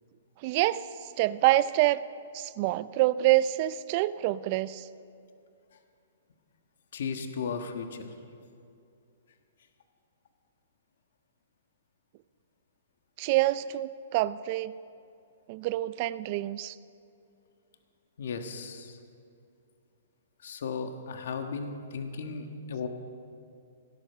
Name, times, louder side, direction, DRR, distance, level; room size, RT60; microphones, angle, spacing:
voice 1, 0.4-0.8 1.2-2.0 2.3-4.8 13.2-14.7 15.5-16.7, right 16 dB, 40° right, 17 dB, 0.4 m, -26 dB
voice 2, 6.9-8.1 18.2-19.0 20.4-22.9, left 5 dB, 70° left, 6 dB, 1.5 m, -35 dB
17.5 x 11.0 x 6.7 m, 2.5 s
hypercardioid pair, 145°, 0 cm